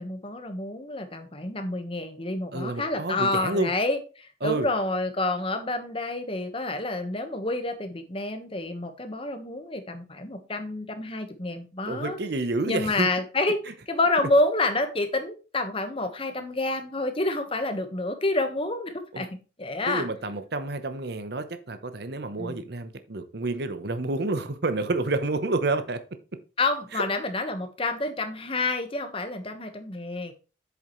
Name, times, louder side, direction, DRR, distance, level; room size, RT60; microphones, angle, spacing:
voice 1, 0.0-12.2 12.7-13.6 13.9-19.3 19.6-20.1 22.4-22.7 26.6-30.3, left 2 dB, 30° left, 1.2 m, -28 dB
voice 2, 2.5-3.7 4.4-4.7 11.9-13.1 19.1-19.3 19.9-26.0 26.9-27.0, right 2 dB, 55° right, 0.9 m, -29 dB
8.4 x 7.1 x 3.1 m
head